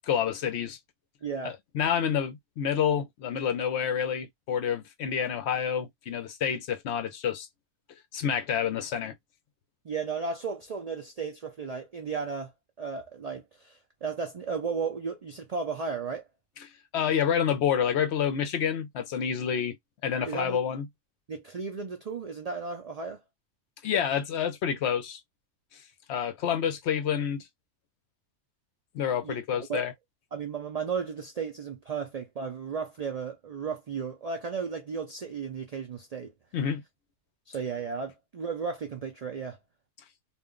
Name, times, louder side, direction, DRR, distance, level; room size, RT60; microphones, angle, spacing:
voice 1, 0.1-0.8 1.4-7.5 8.1-9.1 16.9-19.8 20.0-20.9 23.8-25.2 26.1-27.5 28.9-29.9 36.5-36.8, left 8 dB, 65° left, 0.8 m, -28 dB
voice 2, 1.2-1.5 9.8-12.5 12.8-16.3 20.2-20.6 21.3-23.2 29.2-29.4 29.7-29.9 30.3-36.3 37.5-39.6, right 5 dB, 65° right, 0.3 m, -34 dB
2.5 x 2.1 x 3.6 m
omnidirectional pair, 1.3 m